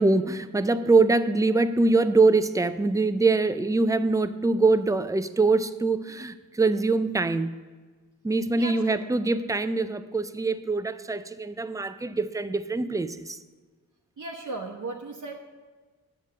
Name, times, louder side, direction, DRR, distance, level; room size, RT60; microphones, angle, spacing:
voice 1, 0.0-7.5 8.2-13.4, right 3 dB, 10° right, 0.4 m, -23 dB
voice 2, 8.5-9.0 14.2-15.3, right 2 dB, 60° right, 0.9 m, -36 dB
8.0 x 6.7 x 7.3 m
wide cardioid pair, 115°, 34 cm